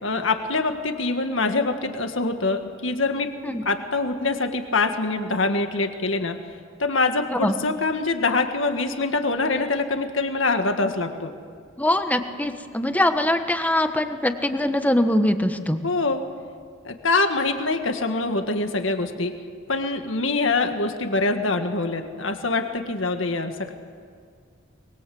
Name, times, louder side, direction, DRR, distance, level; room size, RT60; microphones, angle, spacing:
voice 1, 0.0-3.3 3.7-6.4 6.8-11.3 15.8-16.2 16.8-19.3 19.7-23.7, left 3 dB, 70° left, 6 dB, 1.9 m, -24 dB
voice 2, 11.8-15.8, left 1 dB, 10° left, 7 dB, 1.2 m, -22 dB
24.5 x 22.0 x 7.8 m, 2.1 s
head